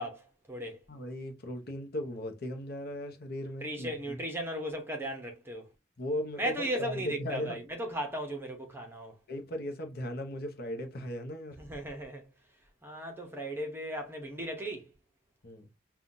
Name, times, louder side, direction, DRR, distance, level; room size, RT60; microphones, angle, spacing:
voice 1, 0.0-0.8 3.6-5.7 6.4-9.1 11.6-12.2 12.8-14.9, right 1 dB, 10° right, 0.8 m, -36 dB
voice 2, 0.9-4.2 6.0-7.6 9.3-11.6 15.4-15.7, left 1 dB, 55° left, 0.8 m, -37 dB
5.5 x 2.3 x 2.6 m
head